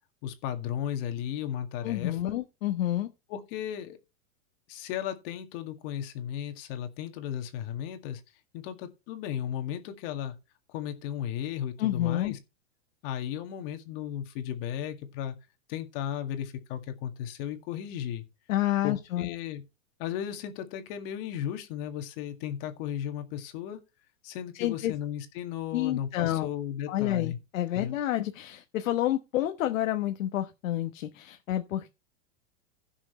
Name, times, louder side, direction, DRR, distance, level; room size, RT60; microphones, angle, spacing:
voice 1, 0.2-2.3 3.3-4.0 4.7-8.2 8.5-10.4 10.7-12.4 13.0-15.4 15.7-18.2 18.8-19.6 20.0-23.8 24.2-27.4 27.7-28.0, left 10 dB, 45° left, 2.0 m, -35 dB
voice 2, 1.8-3.1 11.8-12.3 18.5-19.3 24.5-24.9 25.7-26.5 26.9-31.9, left 13 dB, 75° left, 1.2 m, -29 dB
16.5 x 6.3 x 3.2 m
supercardioid pair, 155°, 40 cm